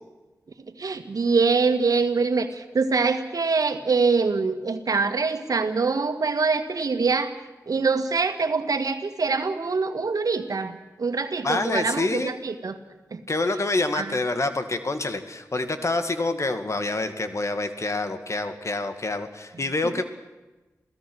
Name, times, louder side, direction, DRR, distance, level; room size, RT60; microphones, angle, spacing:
voice 1, 0.8-7.3 7.7-12.8 13.1-13.2 13.9-14.2, right 4 dB, 70° right, 8 dB, 1.8 m, -24 dB
voice 2, 11.4-12.4 13.3-20.0, left 2 dB, 50° left, 8 dB, 2.2 m, -27 dB
28.0 x 17.0 x 6.4 m, 1.1 s
cardioid pair, 45°, 6 cm